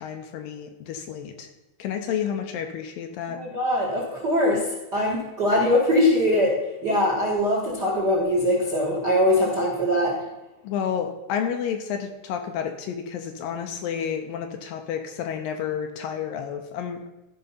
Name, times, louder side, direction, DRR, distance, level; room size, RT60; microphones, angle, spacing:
voice 1, 0.0-1.5 1.8-3.4 10.6-17.1, left 8 dB, 75° left, 5 dB, 2.4 m, -30 dB
voice 2, 3.3-4.7 4.9-6.6 6.8-10.2, left 1 dB, 45° right, -2 dB, 1.4 m, -22 dB
13.5 x 5.3 x 5.5 m, 1.0 s
omnidirectional pair, 4.4 m